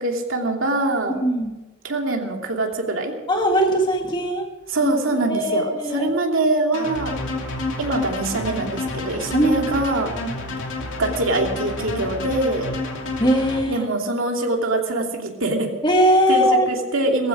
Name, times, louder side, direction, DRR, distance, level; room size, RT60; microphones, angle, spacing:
voice 1, 0.0-1.2 1.8-3.1 4.7-7.1 7.8-10.1 11.0-12.7 13.7-15.7 16.3-17.3, right 2 dB, 65° right, 1 dB, 2.7 m, -23 dB
voice 2, 1.1-1.5 3.3-4.5 4.8-6.1 9.3-9.6 13.2-13.9 15.8-16.7, equal, 20° left, 2 dB, 1.7 m, -20 dB
Nephlim bass, 6.7-13.6, left 2 dB, 60° left, 2.8 m, -29 dB
18.0 x 15.0 x 5.0 m, 1.1 s
head